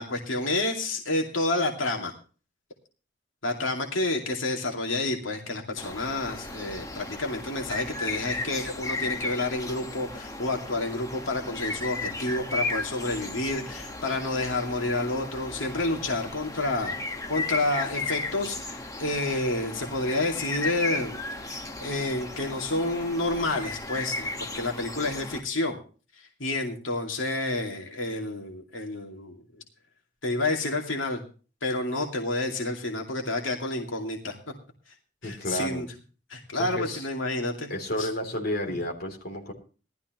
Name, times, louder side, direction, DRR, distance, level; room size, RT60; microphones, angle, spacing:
voice 1, 0.0-2.1 3.4-16.9 17.3-25.8 26.2-29.4 30.2-31.2 31.6-34.4 35.2-35.9 36.3-37.7 38.0-38.1, left 2 dB, 85° left, 1 dB, 2.5 m, -29 dB
sound 1, 5.8-25.4, left 2 dB, 20° left, 1.2 m, -35 dB
voice 2, 35.2-35.8 36.5-37.1 37.7-39.5, left 1 dB, 55° left, 2 dB, 3.3 m, -31 dB
18.5 x 13.0 x 3.1 m, 0.37 s
head